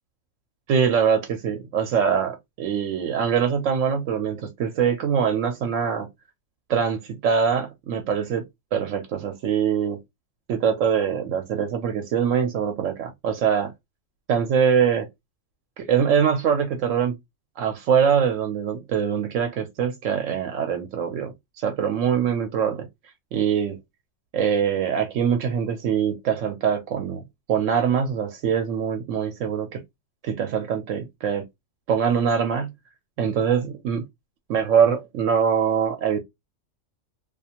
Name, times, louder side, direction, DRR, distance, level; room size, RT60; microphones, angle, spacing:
voice 1, 0.7-6.1 6.7-8.4 8.7-10.0 10.5-13.7 14.3-15.1 15.8-17.2 17.6-22.9 23.3-23.8 24.3-27.2 27.5-29.8 30.2-31.4 31.9-32.7 33.2-34.0 34.5-36.2, right 7 dB, 80° right, 1.0 m, -23 dB
2.4 x 2.4 x 2.8 m
omnidirectional pair, 1.3 m